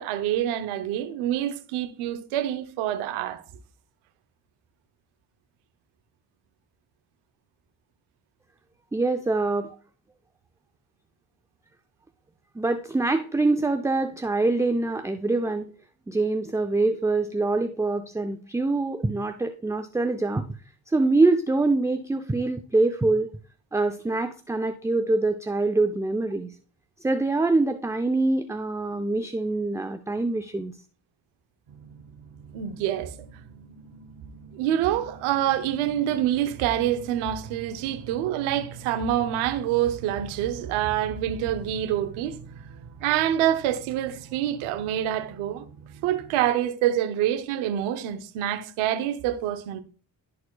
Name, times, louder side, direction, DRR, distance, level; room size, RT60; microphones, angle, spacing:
voice 1, 0.0-3.4 32.5-33.1 34.5-42.4 43.0-45.7 46.0-49.8, right 11 dB, 90° right, 0.8 m, -26 dB
voice 2, 8.9-9.7 12.6-15.7 16.1-20.5 20.9-23.3 23.7-26.6 27.0-30.7, right 2 dB, 5° right, 0.4 m, -24 dB
sound 1, 31.7-46.5, right 5 dB, 65° right, 1.0 m, -45 dB
11.5 x 4.2 x 2.2 m
hypercardioid pair, 45°, 48 cm